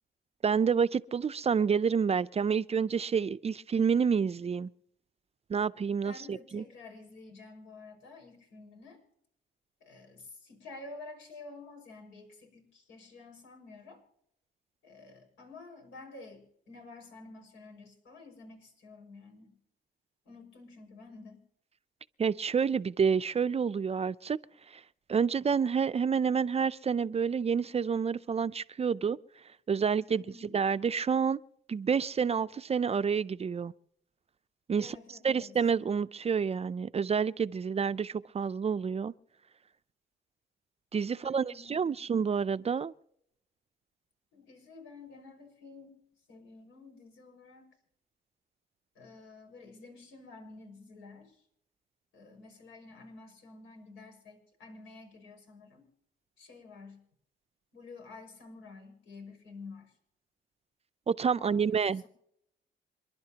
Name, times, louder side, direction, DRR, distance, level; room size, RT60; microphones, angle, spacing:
voice 1, 0.4-4.7 5.5-6.6 22.2-24.4 24.7-24.8 25.1-29.2 29.7-30.2 30.5-31.4 31.7-33.7 34.7-35.0 35.2-39.1 40.9-42.9 61.1-62.1, right 6 dB, 30° right, 0.5 m, -28 dB
voice 2, 6.0-9.0 9.8-14.0 14.8-19.5 20.2-21.4 30.1-30.6 34.8-35.6 41.1-42.1 44.3-46.0 46.3-47.7 48.9-51.4 52.1-55.9 56.4-57.0 57.7-60.0 61.3-62.1, left 3 dB, 85° left, 5.8 m, -50 dB
27.5 x 11.0 x 2.9 m
cardioid pair, 90°, 20 cm